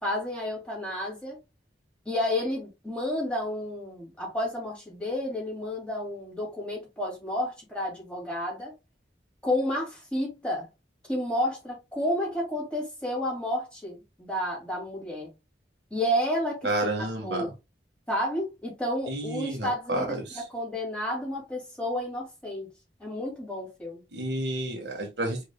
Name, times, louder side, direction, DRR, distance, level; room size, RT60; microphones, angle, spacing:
voice 1, 0.0-1.4 2.0-8.7 9.4-10.7 11.0-15.3 15.9-17.5 18.1-22.7 23.0-24.0, left 1 dB, 5° left, 2.6 m, -31 dB
voice 2, 16.6-17.5 19.1-20.4 24.1-25.4, right 2 dB, 65° right, 1.5 m, -30 dB
5.2 x 3.7 x 2.3 m
head